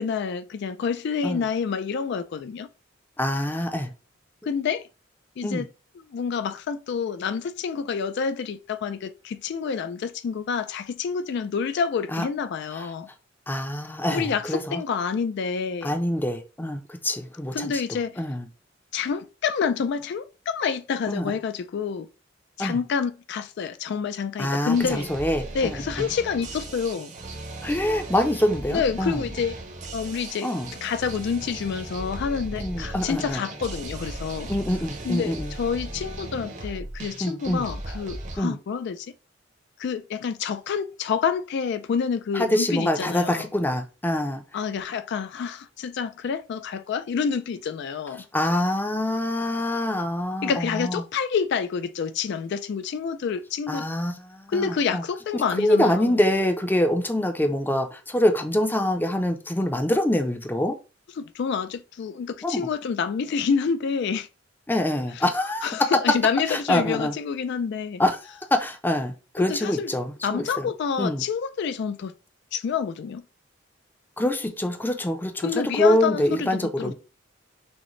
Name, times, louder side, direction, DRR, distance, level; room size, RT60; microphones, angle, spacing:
voice 1, 0.0-2.7 4.4-4.8 5.4-5.7 6.1-13.1 14.1-16.0 17.5-18.2 18.9-22.1 22.6-25.1 25.5-27.1 28.7-29.6 29.9-30.5 30.8-34.5 35.0-39.1 39.8-43.5 44.5-48.2 50.4-53.9 54.5-56.2 61.2-64.3 65.2-65.3 65.6-68.0 69.4-69.9 70.2-72.1 72.5-73.2 75.4-76.9, left 6 dB, 60° left, 0.3 m, -28 dB
voice 2, 3.2-3.9 5.4-5.7 12.1-12.2 12.7-12.9 13.5-14.8 15.8-17.7 18.2-18.5 21.1-21.3 22.6-22.8 24.4-26.1 27.6-29.2 30.4-30.7 32.6-33.4 34.5-35.5 37.2-37.6 38.4-38.6 42.3-44.4 48.3-50.9 53.7-55.0 55.3-60.7 62.4-62.7 64.7-65.7 66.5-67.1 68.0-70.7 71.0-71.2 74.2-76.9, left 1 dB, 10° left, 0.5 m, -25 dB
sound 1, 24.7-38.4, right 2 dB, 40° right, 0.8 m, -37 dB
6.2 x 2.1 x 3.1 m
head